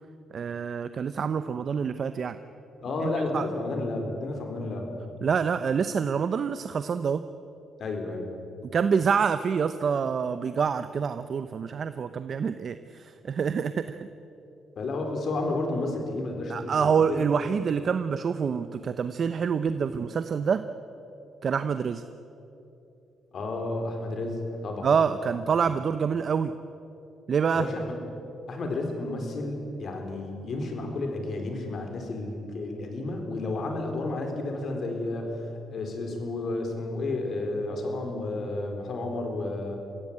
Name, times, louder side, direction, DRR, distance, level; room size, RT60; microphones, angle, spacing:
voice 1, 0.3-2.4 3.0-3.5 5.2-7.2 8.7-14.1 16.5-20.6 21.4-22.0 24.8-26.5 27.3-27.7, right 6 dB, 50° right, 11 dB, 0.7 m, -26 dB
voice 2, 2.8-4.9 7.8-8.3 14.8-17.3 23.3-24.9 25.3-25.4 27.5-28.0 28.5-35.4 35.7-39.8, left 2 dB, 55° left, 3 dB, 4.1 m, -31 dB
24.0 x 16.0 x 8.7 m, 3.0 s
cardioid pair, 90°, 0 cm